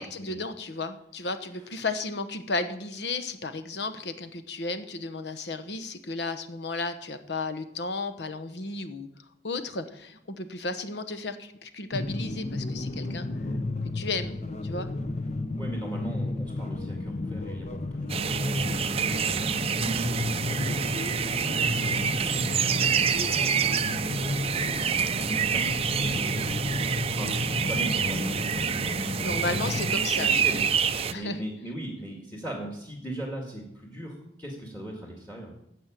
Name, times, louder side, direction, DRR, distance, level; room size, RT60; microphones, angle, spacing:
voice 1, 0.0-9.1 9.4-13.3 13.9-14.4 14.6-14.9 29.2-30.4 31.1-31.4, left 3 dB, 70° left, 10 dB, 1.1 m, -33 dB
sound 1, 11.9-29.9, left 2 dB, 40° left, 0.8 m, -32 dB
voice 2, 15.6-26.5 26.9-29.4 29.9-30.6 31.1-35.5, right 1 dB, 10° left, 0 dB, 2.1 m, -39 dB
sound 2, 18.1-31.1, right 7 dB, 35° right, 0.5 m, -27 dB
12.5 x 7.6 x 7.6 m, 0.77 s
head